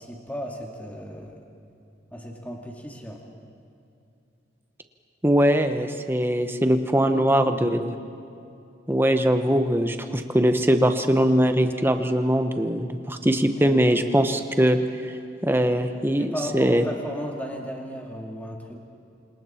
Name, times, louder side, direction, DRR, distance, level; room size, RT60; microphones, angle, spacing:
voice 1, 0.0-1.4 2.1-3.2 7.0-7.7 13.6-14.0 16.1-18.8, equal, 10° left, 0 dB, 2.3 m, -35 dB
voice 2, 5.2-7.9 8.9-14.8 15.4-16.3 16.5-16.8, equal, 10° right, 7 dB, 1.1 m, -21 dB
29.0 x 26.5 x 4.4 m, 2.6 s
head